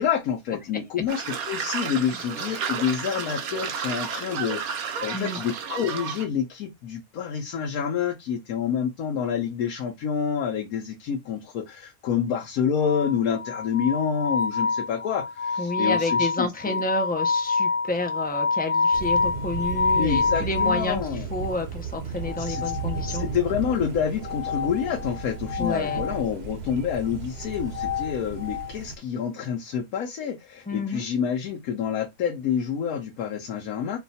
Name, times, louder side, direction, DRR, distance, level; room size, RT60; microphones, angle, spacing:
voice 1, 0.0-16.8 19.9-21.3 22.4-22.6 23.1-34.0, left 7 dB, 80° left, 1.2 m, -28 dB
sound 1, 1.1-6.3, right 7 dB, 85° right, 1.3 m, -32 dB
sound 2, 12.8-20.9 22.2-23.5 24.2-26.2 27.4-28.7, left 4 dB, 45° left, 1.2 m, -27 dB
voice 2, 15.6-23.3 25.6-26.0 30.7-31.0, left 2 dB, 15° left, 0.4 m, -30 dB
Thunder, 18.9-29.0, right 5 dB, 50° right, 1.0 m, -34 dB
4.7 x 2.3 x 4.1 m
omnidirectional pair, 1.5 m